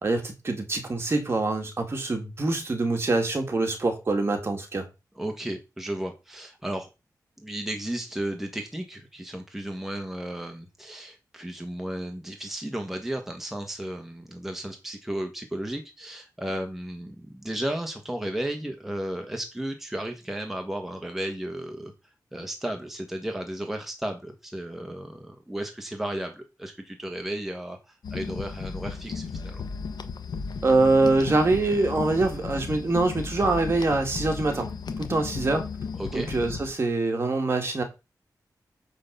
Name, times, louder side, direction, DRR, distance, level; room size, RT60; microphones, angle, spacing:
voice 1, 0.0-4.9 30.6-34.7 35.0-35.7 36.1-37.8, right 2 dB, 35° right, 2.2 m, -24 dB
voice 2, 5.2-6.9 7.4-21.9 22.3-29.6 36.0-36.3, right 1 dB, 5° right, 1.3 m, -34 dB
sound 1, 28.0-36.7, left 5 dB, 90° left, 1.1 m, -35 dB
9.6 x 3.9 x 6.9 m
wide cardioid pair, 165°, 7 cm